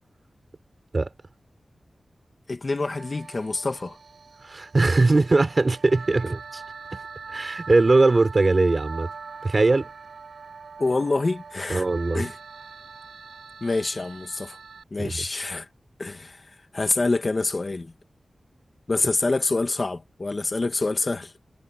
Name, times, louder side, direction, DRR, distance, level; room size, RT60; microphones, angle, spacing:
voice 1, 2.5-4.0 10.8-11.8 12.1-12.4 13.6-14.6 14.9-15.7 16.0-16.4 16.7-17.9 18.9-21.3, left 3 dB, 40° left, 2.2 m, -26 dB
sound 1, 2.8-14.8, right 5 dB, 85° right, 5.2 m, -42 dB
voice 2, 4.4-6.6 6.9-7.0 7.3-9.1 9.4-9.9 11.7-12.3 15.0-15.2, right 3 dB, 40° right, 5.6 m, -20 dB
wide cardioid pair, 100°, 0 cm